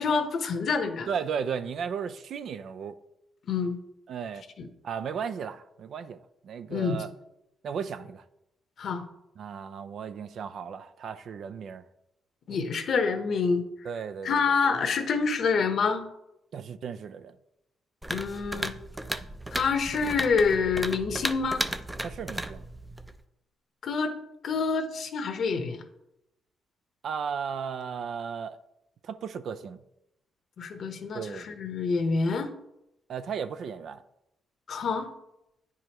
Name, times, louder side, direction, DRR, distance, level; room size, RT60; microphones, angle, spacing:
voice 1, 0.0-1.1 3.5-3.8 4.6-4.7 6.7-7.0 8.8-9.0 12.5-13.6 14.2-16.1 18.1-18.7 19.5-21.7 23.8-24.1 24.4-25.8 30.6-32.5 34.7-35.1, left 5 dB, 60° left, 0.9 m, -27 dB
voice 2, 1.1-3.0 4.1-4.4 4.8-7.1 7.6-8.2 9.4-11.8 13.8-14.6 16.5-17.4 22.0-22.6 27.0-28.6 29.0-29.8 31.1-31.5 33.1-34.0, right 7 dB, 65° right, 0.4 m, -35 dB
sound 1, 18.0-23.2, right 1 dB, 10° right, 0.5 m, -35 dB
9.3 x 4.8 x 3.0 m
cardioid pair, 80°, 0 cm